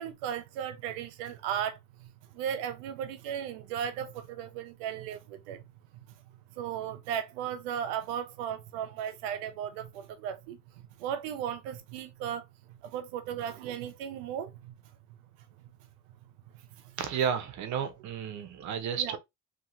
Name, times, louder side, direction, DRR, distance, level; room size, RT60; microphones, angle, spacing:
voice 1, 0.0-1.8 2.3-5.6 6.6-10.6 11.0-14.7 16.8-16.9 19.0-19.2, right 9 dB, 85° right, 0.6 m, -36 dB
voice 2, 17.0-19.2, right 8 dB, 60° right, 0.9 m, -32 dB
2.9 x 2.8 x 2.6 m
supercardioid pair, 75°, 32 cm